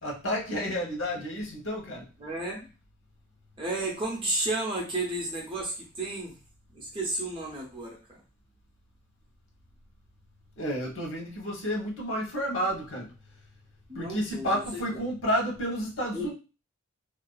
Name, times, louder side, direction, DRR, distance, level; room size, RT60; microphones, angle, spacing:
voice 1, 0.0-2.0 10.6-13.1 13.9-16.3, equal, 75° left, -1 dB, 0.9 m, -31 dB
voice 2, 2.2-2.7 3.6-6.3 6.7-8.0 13.9-14.6 14.9-15.0 16.1-16.3, right 2 dB, 25° right, -2 dB, 0.6 m, -32 dB
2.5 x 2.3 x 2.3 m, 0.32 s
head